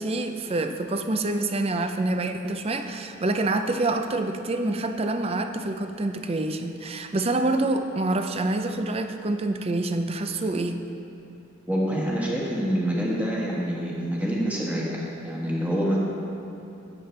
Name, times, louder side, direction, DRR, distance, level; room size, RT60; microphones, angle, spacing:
voice 1, 0.0-10.8, right 2 dB, 30° right, 7 dB, 0.5 m, -27 dB
voice 2, 11.7-16.0, equal, 5° right, -5 dB, 1.5 m, -26 dB
13.5 x 9.0 x 3.3 m, 2.7 s
head